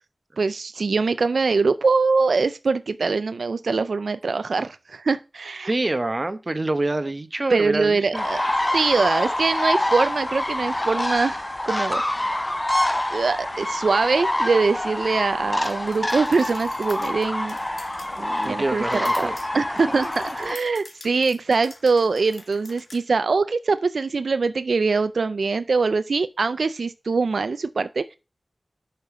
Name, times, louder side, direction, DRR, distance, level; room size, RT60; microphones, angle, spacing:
voice 1, 0.4-5.7 7.5-8.4 8.7-12.3 13.1-17.6 18.2-28.1, right 4 dB, 90° right, 0.4 m, -23 dB
voice 2, 5.6-8.2 18.4-19.4 20.0-20.1 20.4-20.5, right 2 dB, 40° right, 0.9 m, -26 dB
sound 1, 8.1-20.6, left 1 dB, 20° left, 0.3 m, -26 dB
sound 2, 15.6-23.0, left 2 dB, 65° left, 1.7 m, -46 dB
6.6 x 5.7 x 4.8 m
wide cardioid pair, 70°, 0 cm